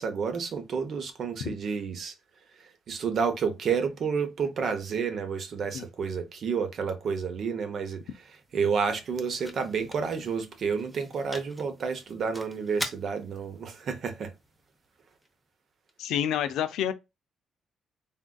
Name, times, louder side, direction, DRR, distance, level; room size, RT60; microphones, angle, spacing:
voice 1, 0.0-2.1 2.9-8.0 8.5-14.3, right 6 dB, 55° right, 0.7 m, -30 dB
sound 1, 7.8-15.9, equal, 10° right, 0.7 m, -44 dB
voice 2, 16.0-16.9, left 10 dB, 85° left, 0.4 m, -28 dB
3.6 x 2.6 x 2.2 m
cardioid pair, 100°, 0 cm